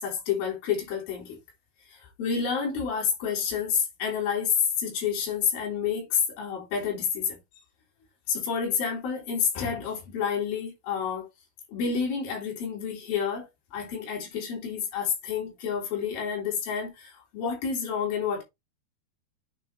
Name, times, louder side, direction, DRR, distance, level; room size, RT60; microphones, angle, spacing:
voice 1, 0.0-1.4 1.9-7.4 8.3-11.3 11.7-18.4, left 7 dB, 65° left, 5.0 m, -29 dB
8.9 x 3.8 x 4.4 m
omnidirectional pair, 4.5 m